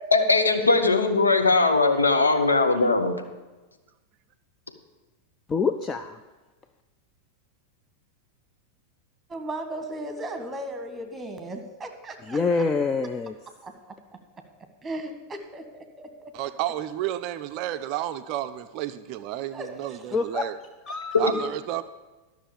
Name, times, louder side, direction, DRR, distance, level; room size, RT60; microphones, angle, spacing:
voice 1, 0.1-3.2 21.1-21.2, left 3 dB, 80° left, 6 dB, 1.0 m, -20 dB
voice 2, 5.5-6.2 12.3-13.4 20.1-20.5 20.9-21.5, left 4 dB, 20° left, 8 dB, 0.4 m, -26 dB
voice 3, 9.3-12.6 13.6-13.7 14.8-16.3 19.5-19.7, right 1 dB, 15° right, 6 dB, 1.5 m, -36 dB
voice 4, 16.3-20.6 21.2-21.8, right 13 dB, 40° right, 11 dB, 0.4 m, -31 dB
12.5 x 6.3 x 6.8 m, 1.2 s
figure-of-eight pair, 90°, 0 cm